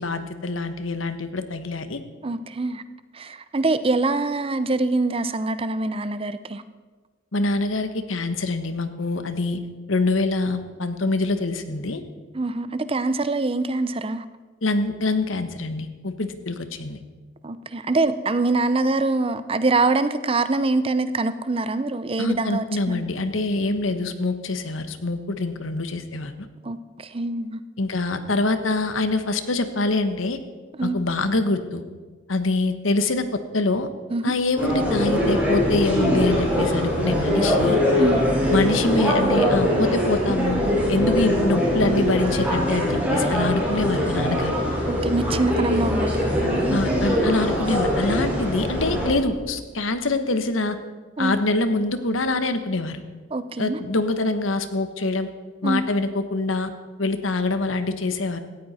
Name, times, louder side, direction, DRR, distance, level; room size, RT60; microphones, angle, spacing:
voice 1, 0.0-2.0 7.3-9.6 9.9-12.0 14.6-17.0 22.2-26.3 27.8-30.4 30.8-31.8 32.3-33.9 34.2-37.8 38.5-40.6 40.9-44.6 46.7-50.8 51.2-53.0 53.6-55.3 55.6-56.7 57.0-58.4, left 2 dB, 80° left, 10 dB, 1.2 m, -25 dB
voice 2, 2.2-2.8 3.1-6.6 12.3-14.2 17.4-23.0 26.6-27.6 30.8-31.0 34.1-34.3 38.0-38.2 44.9-46.3 51.2-51.3 53.3-53.8 55.6-55.8, right 3 dB, 30° right, 13 dB, 0.6 m, -24 dB
sound 1, 34.6-49.1, equal, 10° right, 4.4 m, -22 dB
17.0 x 14.5 x 4.2 m, 1.4 s
head